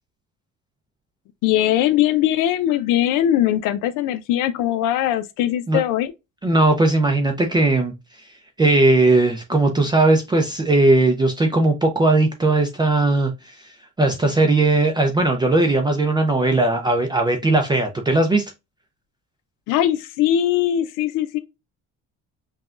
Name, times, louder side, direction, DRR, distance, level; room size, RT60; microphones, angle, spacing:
voice 1, 1.4-6.1 19.7-21.4, left 12 dB, 90° left, 0.6 m, -20 dB
voice 2, 6.4-7.9 8.6-18.5, right 2 dB, 15° right, 0.5 m, -18 dB
5.7 x 2.3 x 2.4 m
cardioid pair, 145°, 31 cm